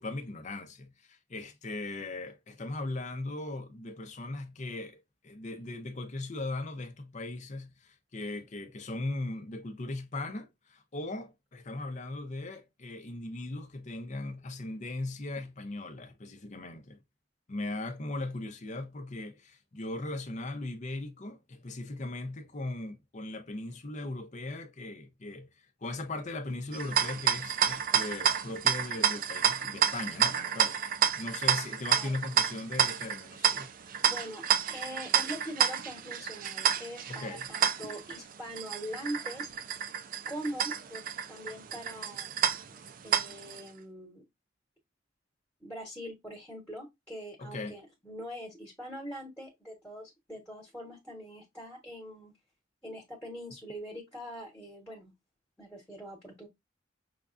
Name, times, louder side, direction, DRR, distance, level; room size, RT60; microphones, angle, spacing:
voice 1, 0.0-17.0 17.5-33.7 37.1-37.5 47.4-47.7, left 2 dB, 40° left, 0.7 m, -38 dB
sound 1, 26.7-43.6, right 8 dB, 45° right, 0.4 m, -30 dB
voice 2, 34.0-39.5 40.3-41.0 41.3-42.6 43.0-44.2 45.6-52.3 52.8-55.1 55.6-56.5, equal, 10° left, 1.2 m, -42 dB
5.9 x 2.3 x 2.5 m
head